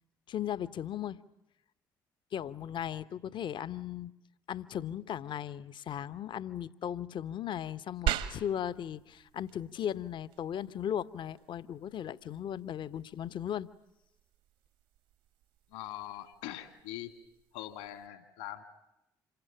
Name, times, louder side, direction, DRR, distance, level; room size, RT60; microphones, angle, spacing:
voice 1, 0.3-1.2 2.3-4.1 4.5-13.7, left 10 dB, 50° left, 1.0 m, -37 dB
sound 1, 8.1-18.1, right 11 dB, 65° right, 1.7 m, -42 dB
voice 2, 15.7-17.2 17.5-18.6, left 13 dB, 70° left, 2.3 m, -42 dB
27.5 x 23.5 x 9.0 m
figure-of-eight pair, 45°, 11 cm